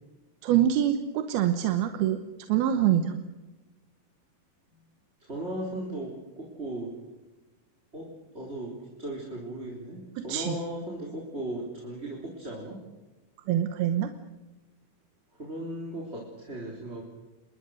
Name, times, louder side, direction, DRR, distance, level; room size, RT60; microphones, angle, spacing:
voice 1, 0.4-2.2 2.5-3.2 10.2-10.6 13.5-14.1, right 10 dB, 85° right, 8 dB, 3.1 m, -25 dB
voice 2, 5.2-6.9 7.9-8.1 8.3-12.8 15.4-17.0, right 1 dB, 15° right, -2 dB, 3.9 m, -37 dB
27.5 x 22.5 x 6.5 m, 1.1 s
omnidirectional pair, 4.3 m